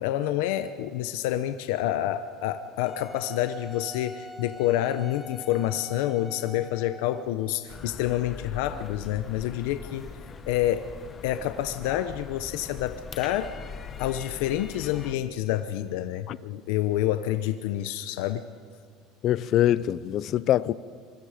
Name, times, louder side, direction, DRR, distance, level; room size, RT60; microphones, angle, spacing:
voice 1, 0.0-10.1 10.5-10.8 11.2-13.5 14.0-18.5, left 13 dB, 85° left, 0.8 m, -28 dB
Wind instrument woodwind instrument, 2.9-7.4, left 1 dB, 10° left, 1.4 m, -44 dB
sound 1, 7.7-15.2, left 5 dB, 25° left, 1.1 m, -41 dB
voice 2, 19.2-20.7, left 12 dB, 45° left, 0.6 m, -23 dB
26.0 x 23.5 x 5.1 m
cardioid pair, 150°, 0 cm